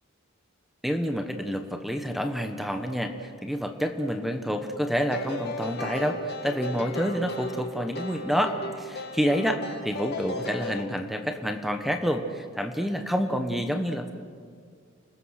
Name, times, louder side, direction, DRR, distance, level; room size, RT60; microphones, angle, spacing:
voice 1, 0.8-14.1, equal, ahead, 6 dB, 1.2 m, -28 dB
sound 1, 5.1-10.8, left 2 dB, 50° left, 2.3 m, -36 dB
30.0 x 20.5 x 6.6 m, 2.2 s
head